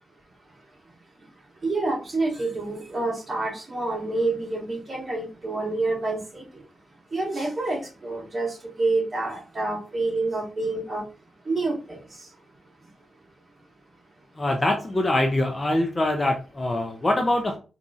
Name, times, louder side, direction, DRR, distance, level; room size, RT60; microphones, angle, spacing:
voice 1, 1.6-6.5 7.1-11.0 11.4-12.3, right 2 dB, 30° right, -2 dB, 1.4 m, -28 dB
voice 2, 14.4-17.6, left 1 dB, 20° left, 3 dB, 0.4 m, -24 dB
4.0 x 2.6 x 2.4 m, 0.34 s
wide cardioid pair, 140°, 0 cm